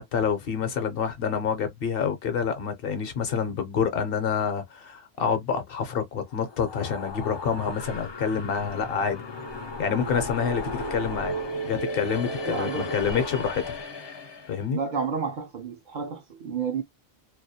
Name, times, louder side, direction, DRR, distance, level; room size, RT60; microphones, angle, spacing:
voice 1, 0.0-9.2 9.8-11.4 11.6-13.8 14.5-14.8, left 6 dB, 65° left, 0.8 m, -27 dB
sound 1, 6.3-14.6, left 1 dB, 45° left, 0.3 m, -35 dB
voice 2, 12.4-12.9 14.7-16.8, right 6 dB, 55° right, 0.6 m, -30 dB
2.3 x 2.1 x 2.7 m
omnidirectional pair, 1.1 m